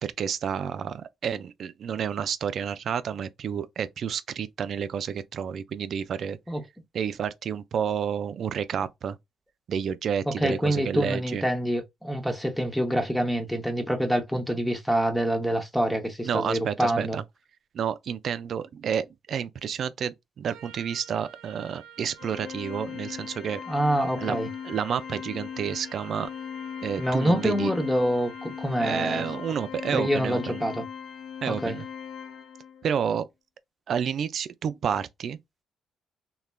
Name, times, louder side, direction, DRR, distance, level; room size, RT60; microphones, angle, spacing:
voice 1, 0.0-6.4 6.9-9.2 9.7-11.4 16.2-17.2 17.7-23.6 24.2-24.4 24.6-26.3 26.8-27.7 28.8-30.6 31.4-31.8 32.8-33.3 33.9-35.4, right 7 dB, 60° right, 0.3 m, -30 dB
voice 2, 10.4-17.2 23.7-24.5 27.0-29.3 29.9-30.8 31.5-31.8, equal, 5° left, 0.7 m, -26 dB
Trumpet, 20.5-29.8, right 10 dB, 85° right, 0.7 m, -51 dB
Organ, 22.2-32.9, left 8 dB, 75° left, 0.5 m, -38 dB
3.1 x 2.1 x 2.2 m
cardioid pair, 90°, 0 cm